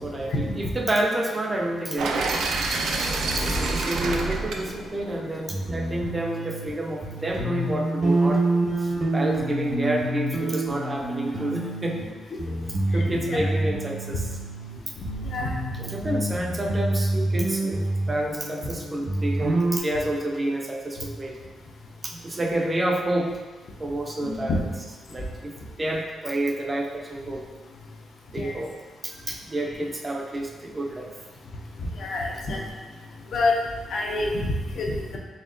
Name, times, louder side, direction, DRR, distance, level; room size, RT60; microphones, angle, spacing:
voice 1, 0.0-2.4 3.4-8.4 8.8-12.1 12.9-14.3 15.8-21.4 22.0-23.4 23.8-24.7 25.1-27.5 28.3-28.7 29.0-31.2, right 1 dB, 20° right, 1 dB, 0.4 m, -29 dB
sound 1, 2.0-6.0, right 3 dB, 80° right, 0.4 m, -28 dB
sound 2, 5.5-6.7 7.0-12.1 12.4-14.8 15.0-19.8, right 2 dB, 45° right, 0.8 m, -27 dB
voice 2, 24.2-24.6 28.4-28.5 32.0-32.6 33.3-33.5 33.9-34.3 34.8-35.2, left 3 dB, 60° left, 0 dB, 0.6 m, -27 dB
4.2 x 3.6 x 2.5 m, 1.3 s
cardioid pair, 130°, 0 cm